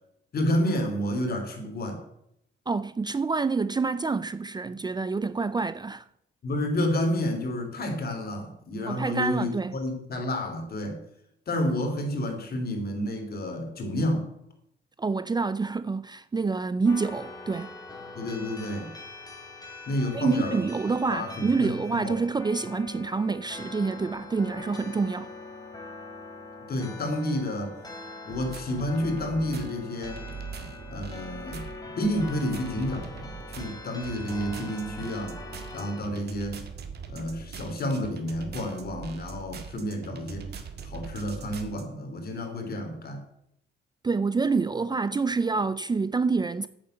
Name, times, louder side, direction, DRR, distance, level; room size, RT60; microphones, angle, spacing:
voice 1, 0.3-2.0 6.4-11.0 11.5-14.3 18.1-18.9 19.9-20.6 21.1-21.7 22.0-22.2 26.7-27.7 28.3-30.3 30.9-31.7 32.0-35.4 35.7-36.6 37.1-40.5 40.8-43.2, left 1 dB, 50° left, 3.3 m, -30 dB
voice 2, 2.7-6.0 8.9-9.8 15.0-17.8 20.1-25.3 30.6-30.7 44.0-46.7, right 4 dB, 20° right, 0.5 m, -27 dB
sound 1, 16.8-36.0, left 3 dB, 20° left, 3.2 m, -43 dB
sound 2, 28.3-41.8, right 6 dB, 55° right, 1.8 m, -41 dB
8.9 x 8.1 x 7.9 m
cardioid pair, 90°, 20 cm